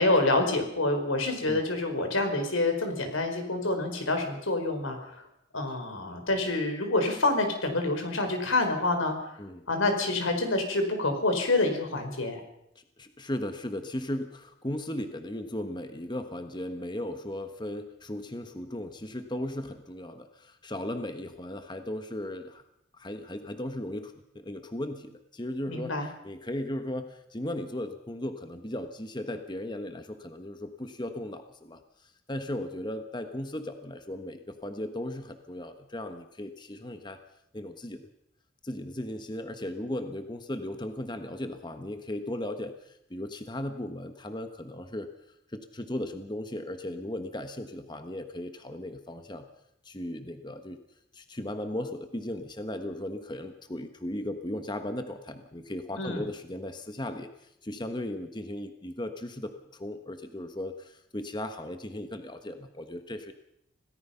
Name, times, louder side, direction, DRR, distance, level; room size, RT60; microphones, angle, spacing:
voice 1, 0.0-5.2 5.5-9.4 9.7-12.4 25.7-26.1 56.0-56.3, left 2 dB, 90° left, 5 dB, 4.7 m, -27 dB
voice 2, 12.7-22.6 22.9-37.2 37.5-38.1 38.6-45.1 45.5-49.5 49.8-50.8 51.1-63.3, left 1 dB, 20° left, 7 dB, 1.2 m, -36 dB
27.0 x 18.0 x 5.8 m, 0.79 s
head